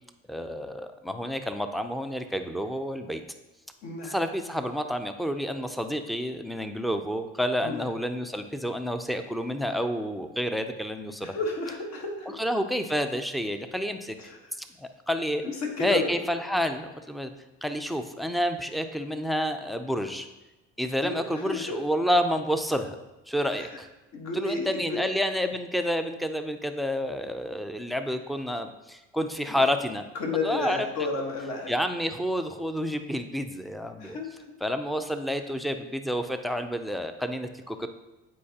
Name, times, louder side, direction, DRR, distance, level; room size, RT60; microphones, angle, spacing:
voice 1, 0.3-3.2 4.1-11.3 12.4-14.2 14.8-15.4 15.8-17.3 17.6-20.3 20.8-23.0 23.3-23.9 24.4-30.0 30.4-30.9 31.7-34.2 34.6-37.9, equal, ahead, 8 dB, 0.4 m, -29 dB
voice 2, 3.8-4.2 7.6-7.9 11.2-12.3 14.2-14.5 15.4-16.2 21.0-21.8 23.5-23.8 24.1-25.1 28.3-28.4 29.5-29.6 30.1-31.7 34.0-34.4, left 3 dB, 65° left, 1 dB, 1.5 m, -32 dB
8.6 x 4.6 x 2.9 m, 1.0 s
supercardioid pair, 80°, 30 cm